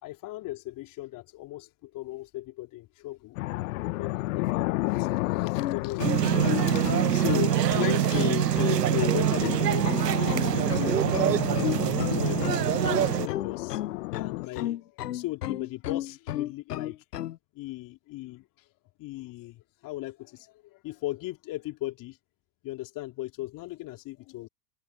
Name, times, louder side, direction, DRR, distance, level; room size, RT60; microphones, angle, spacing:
voice 1, 0.0-3.4 4.0-13.8 14.1-17.0 17.5-18.7 19.0-22.2 22.6-24.5, left 17 dB, 40° left, 3.1 m, -37 dB
sound 1, 3.3-14.5, left 21 dB, 60° left, 1.2 m, -33 dB
sound 2, 5.6-17.4, left 13 dB, 80° left, 0.6 m, -33 dB
sound 3, 6.0-13.3, right 11 dB, 85° right, 0.8 m, -25 dB
hypercardioid pair, 90°, 47 cm